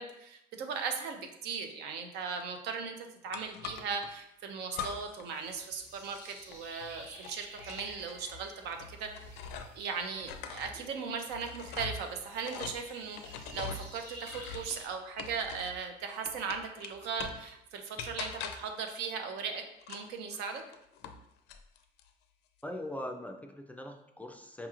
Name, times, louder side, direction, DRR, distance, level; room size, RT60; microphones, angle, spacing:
voice 1, 0.0-3.0 3.2-9.1 9.8-20.6, right 5 dB, 85° right, 5 dB, 0.6 m, -38 dB
sound 1, 3.3-4.1 4.7-5.3 5.6-9.9 10.2-15.8 16.2-17.5 18.0-18.8 19.8-21.2 21.5-22.1, left 6 dB, 80° left, 0.4 m, -43 dB
sound 2, 5.3-14.9, right 2 dB, 60° right, 1.1 m, -52 dB
voice 2, 22.6-24.7, left 1 dB, 10° left, 4 dB, 0.3 m, -41 dB
4.8 x 3.0 x 2.4 m, 0.81 s
cardioid pair, 110°, 17 cm